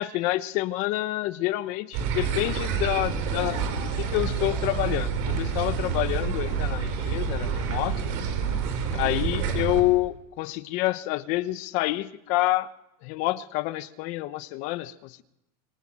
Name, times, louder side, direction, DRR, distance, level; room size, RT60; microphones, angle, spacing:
voice 1, 0.0-8.1 8.9-12.7 13.0-15.2, left 17 dB, 40° left, 1.0 m, -28 dB
sound 1, 1.9-9.8, right 6 dB, 45° right, 5.0 m, -28 dB
26.5 x 23.5 x 7.6 m
supercardioid pair, 180°, 19 cm